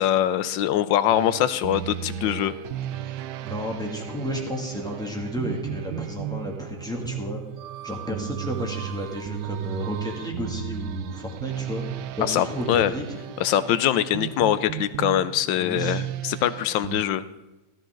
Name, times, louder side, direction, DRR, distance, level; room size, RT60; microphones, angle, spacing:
voice 1, 0.0-2.5 12.2-12.9 13.4-17.2, left 11 dB, 75° left, 14 dB, 1.2 m, -23 dB
sound 1, 1.1-17.0, right 12 dB, 75° right, 1.0 m, -35 dB
voice 2, 3.0-7.4 7.8-11.8 12.2-13.2 15.6-16.0, equal, ahead, -1 dB, 2.2 m, -32 dB
16.5 x 12.5 x 3.8 m, 1.1 s
omnidirectional pair, 2.3 m